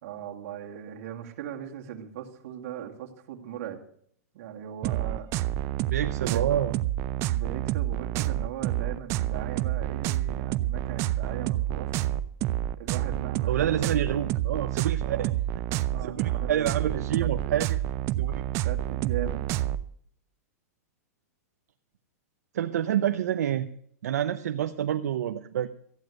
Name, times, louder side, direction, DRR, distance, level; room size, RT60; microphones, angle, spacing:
voice 1, 0.0-3.8 4.3-5.7 6.0-6.6 7.3-12.1 12.8-14.0 15.0-15.4 15.9-16.7 17.2-17.6 18.6-19.4, right 10 dB, 55° right, 1 dB, 2.4 m, -39 dB
sound 1, 4.8-19.8, right 13 dB, 35° right, 0.5 m, -28 dB
voice 2, 5.9-6.7 13.5-15.3 16.0-16.2 16.5-17.8 18.2-18.4 22.5-23.7 24.0-25.7, right 10 dB, 80° right, 9 dB, 0.7 m, -28 dB
14.0 x 9.2 x 6.4 m, 0.64 s
hypercardioid pair, 145°, 9 cm